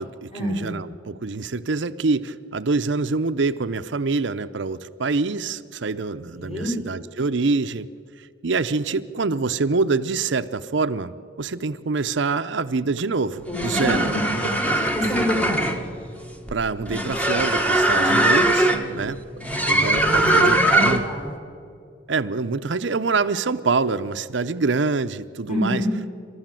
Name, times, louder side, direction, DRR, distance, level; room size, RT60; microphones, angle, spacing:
voice 1, 0.0-7.9 8.2-14.1 16.5-19.2 19.7-21.0 22.1-25.8, right 4 dB, 70° right, 10 dB, 0.7 m, -25 dB
voice 2, 6.3-6.7 13.5-14.1 14.6-15.8 18.5-18.9 19.3-21.3 25.5-25.9, equal, 35° left, -1 dB, 6.8 m, -27 dB
sound 1, 13.4-21.2, right 1 dB, 10° left, 1.3 m, -21 dB
28.5 x 13.0 x 7.6 m, 2.3 s
head